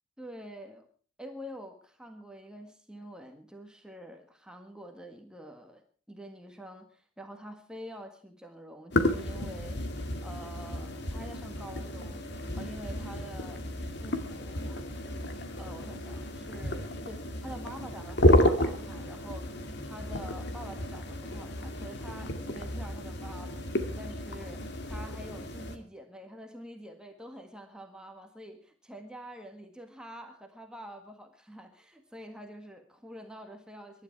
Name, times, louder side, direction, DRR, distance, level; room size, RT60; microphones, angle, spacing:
voice 1, 0.2-0.9 1.2-9.8 10.2-12.3 12.6-13.6 14.0-14.9 15.6-19.5 19.8-23.6 24.0-34.0, equal, 5° right, 3 dB, 1.6 m, -46 dB
sound 1, 8.9-25.8, left 1 dB, 60° left, 2.2 m, -31 dB
23.0 x 12.0 x 4.6 m, 0.41 s
head